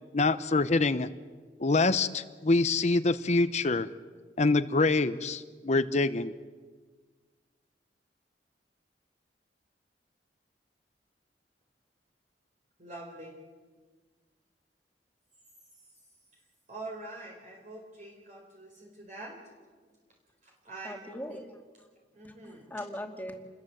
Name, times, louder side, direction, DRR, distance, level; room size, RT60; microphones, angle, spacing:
voice 1, 0.1-1.1 1.6-3.9 4.4-6.3, left 3 dB, 40° left, 12 dB, 0.8 m, -25 dB
voice 2, 12.8-13.3 15.8-15.9 16.7-19.4 20.4-21.4 22.1-22.7, right 2 dB, 45° right, 0 dB, 4.3 m, -45 dB
voice 3, 20.8-21.9 22.2-23.4, left 1 dB, 10° left, 3 dB, 2.5 m, -41 dB
28.5 x 21.0 x 8.0 m, 1.5 s
head